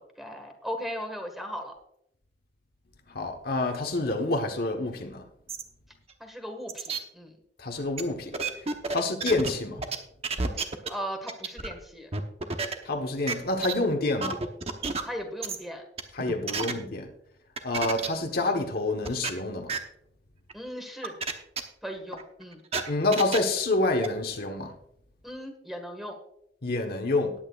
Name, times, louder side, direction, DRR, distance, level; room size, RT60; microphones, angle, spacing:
voice 1, 0.0-1.7 6.2-7.4 8.9-9.1 10.5-12.1 15.0-15.8 16.5-16.7 20.5-21.1 21.8-22.6 25.2-26.2, equal, ahead, 1.6 m, -38 dB
voice 2, 3.1-5.2 7.6-8.3 8.9-9.8 12.9-14.4 16.2-17.1 17.6-19.7 22.9-24.7 26.6-27.3, left 2 dB, 60° left, 1.2 m, -27 dB
sound 1, 5.5-5.6 6.1-6.2 6.7-7.0 8.0-8.1 8.3-9.5 9.8-10.0 10.2-10.9 11.3-11.7 12.1-12.7 13.3-13.4 13.6-13.7 14.2-15.0 15.4-15.6 16.0-16.7 17.6-18.1 18.4-18.5 19.1-19.3 19.7-19.8 20.5-20.6 21.0-21.3 21.6-21.7 22.1-23.4 24.0-24.1, right 4 dB, 35° right, 0.9 m, -30 dB
19.0 x 8.9 x 2.4 m
head